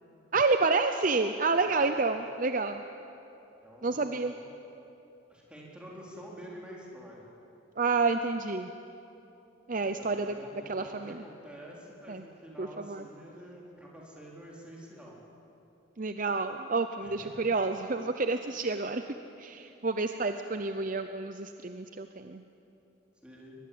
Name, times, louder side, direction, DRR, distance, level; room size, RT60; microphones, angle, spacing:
voice 1, 0.3-2.8 3.8-4.3 7.8-8.7 9.7-10.3 10.7-11.2 12.1-12.2 12.6-13.0 16.0-19.0 19.4-22.4, right 3 dB, 40° right, 8 dB, 0.6 m, -29 dB
voice 2, 1.7-2.1 3.6-4.3 5.3-7.3 10.0-15.2 17.0-17.3 23.2-23.6, equal, 5° right, -4 dB, 4.0 m, -48 dB
22.5 x 20.5 x 8.6 m, 2.9 s
head